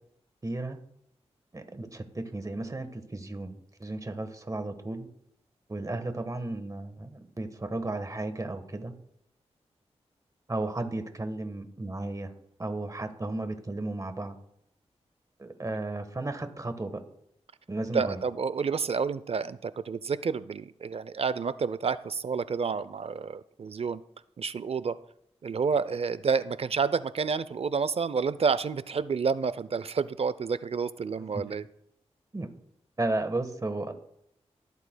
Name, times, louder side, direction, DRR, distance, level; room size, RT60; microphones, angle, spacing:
voice 1, 0.4-0.8 1.5-5.1 5.7-8.9 10.5-12.3 12.6-14.4 15.4-17.0 17.7-18.2 31.3-31.5 32.3-32.5 33.0-33.9, right 2 dB, 30° right, 8 dB, 1.3 m, -34 dB
voice 2, 17.9-24.0 24.4-25.0 25.4-31.7, right 5 dB, 60° right, 16 dB, 0.5 m, -29 dB
24.0 x 8.3 x 2.3 m, 0.74 s
cardioid pair, 50°, 12 cm